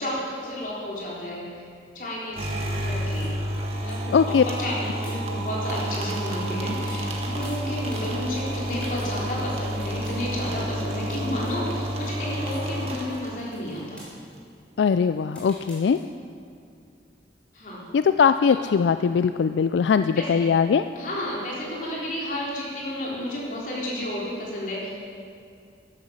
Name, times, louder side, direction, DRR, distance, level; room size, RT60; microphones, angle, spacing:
voice 1, 0.0-1.6 1.9-2.6 2.8-3.4 3.8-14.0 17.5-17.8 18.5-18.6 20.1-20.5 21.0-24.9, equal, 45° left, -5 dB, 3.8 m, -32 dB
sound 1, 2.2-6.0 6.3-6.4 6.7-10.2 10.7-10.8 10.9-12.1 12.5-12.6 12.9-16.0, equal, 5° left, 3.6 m, -48 dB
sound 2, 2.3-13.7, equal, 35° right, 1.8 m, -30 dB
voice 2, 4.1-4.4 14.8-16.0 17.9-20.8, left 6 dB, 80° left, 11 dB, 0.3 m, -20 dB
14.0 x 11.0 x 6.4 m, 2.4 s
head